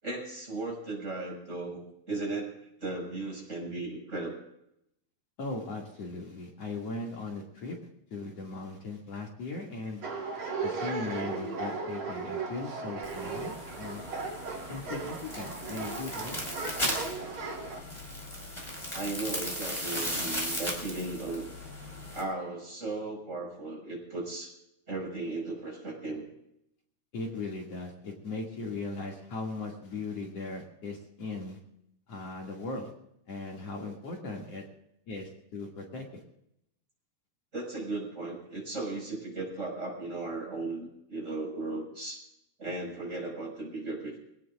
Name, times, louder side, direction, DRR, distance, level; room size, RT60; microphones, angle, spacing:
voice 1, 0.0-1.8 2.1-2.5 2.8-4.3 10.0-10.1 18.9-21.5 22.1-24.5 24.9-26.3 37.5-42.2 42.6-44.2, right 2 dB, 25° right, -1 dB, 5.9 m, -36 dB
voice 2, 5.4-7.8 8.1-10.0 10.6-14.0 14.7-16.5 27.1-31.6 32.1-32.9 33.3-34.6 35.1-36.2, left 3 dB, 60° left, -1 dB, 3.4 m, -38 dB
sound 1, 10.0-17.8, right 4 dB, 80° right, 4.1 m, -36 dB
sound 2, 13.0-22.2, equal, 10° left, 5.0 m, -37 dB
25.0 x 18.0 x 2.5 m, 0.78 s
omnidirectional pair, 3.3 m